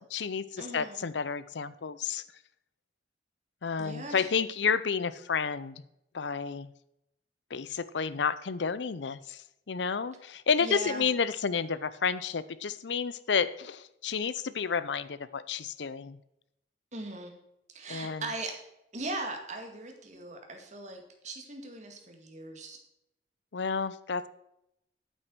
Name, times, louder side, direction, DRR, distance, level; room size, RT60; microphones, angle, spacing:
voice 1, 0.0-2.2 3.6-5.8 6.1-6.7 7.5-16.2 17.9-18.3 23.5-24.3, left 6 dB, 80° left, 16 dB, 0.6 m, -31 dB
voice 2, 0.6-1.0 3.8-4.3 10.6-11.1 16.9-17.3 17.7-18.6 18.9-22.8, right 2 dB, 40° right, 4 dB, 2.0 m, -39 dB
9.1 x 8.1 x 6.1 m, 0.83 s
head